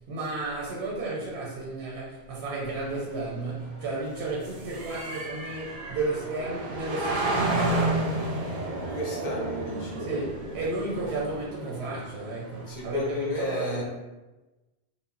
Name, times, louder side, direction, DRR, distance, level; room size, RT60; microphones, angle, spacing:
voice 1, 0.1-8.0 10.0-13.8, right 2 dB, 85° right, -3 dB, 0.8 m, -33 dB
sound 1, 2.6-13.2, right 2 dB, 55° right, 0.5 m, -32 dB
voice 2, 8.8-10.1 12.7-13.8, left 1 dB, 55° left, -2 dB, 0.5 m, -32 dB
2.0 x 2.0 x 3.6 m, 1.1 s
omnidirectional pair, 1.1 m